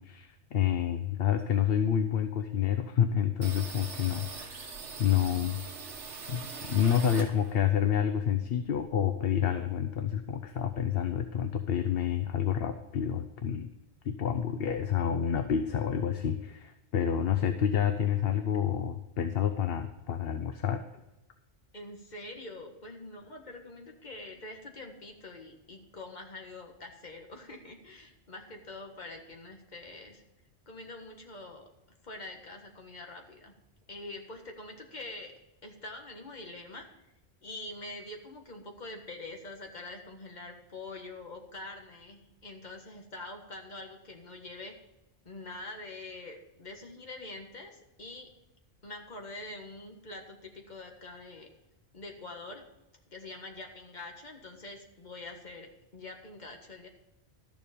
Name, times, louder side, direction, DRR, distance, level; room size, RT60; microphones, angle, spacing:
voice 1, 0.0-4.7 5.0-5.6 6.3-6.4 6.7-13.7 14.0-20.8, left 9 dB, 60° left, 8 dB, 0.8 m, -28 dB
sound 1, 3.4-7.8 8.1-9.5 9.8-9.9 10.1-10.8, right 4 dB, 85° right, 1.5 m, -43 dB
voice 2, 21.7-30.2 30.7-31.7 32.0-33.5 33.9-35.3 35.6-36.9 37.4-44.8 45.2-48.3 48.8-51.5 51.9-52.6 53.1-56.9, left 2 dB, 40° left, 2 dB, 1.7 m, -45 dB
12.5 x 7.1 x 5.1 m, 0.96 s
omnidirectional pair, 1.2 m